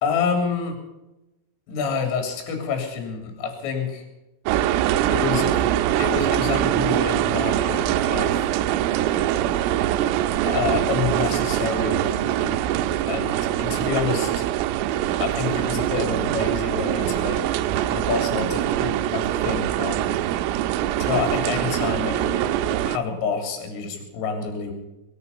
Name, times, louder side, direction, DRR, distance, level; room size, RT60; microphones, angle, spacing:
voice 1, 0.0-0.8 1.7-4.0 5.1-5.7 6.0-8.5 10.4-12.6 13.0-14.4 15.2-20.1 21.0-24.7, left 6 dB, 75° left, 4 dB, 5.7 m, -28 dB
sound 1, 4.5-23.0, right 12 dB, 85° right, 3.4 m, -23 dB
23.5 x 9.7 x 5.5 m, 0.98 s
omnidirectional pair, 5.9 m